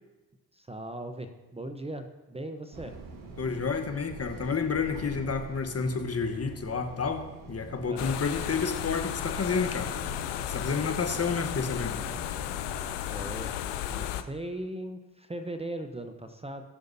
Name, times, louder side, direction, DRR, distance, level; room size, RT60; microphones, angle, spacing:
voice 1, 0.5-2.9 7.9-8.2 10.6-11.3 13.1-13.5 13.9-16.7, right 1 dB, 15° right, 7 dB, 0.8 m, -39 dB
sound 1, 2.7-12.9, right 3 dB, 55° right, 1.5 m, -45 dB
voice 2, 3.4-9.9 10.5-12.0, left 5 dB, 35° left, 7 dB, 1.2 m, -30 dB
sound 2, 8.0-14.2, left 11 dB, 85° left, 0.6 m, -34 dB
19.0 x 6.5 x 2.7 m, 1.2 s
supercardioid pair, 55°, 40 cm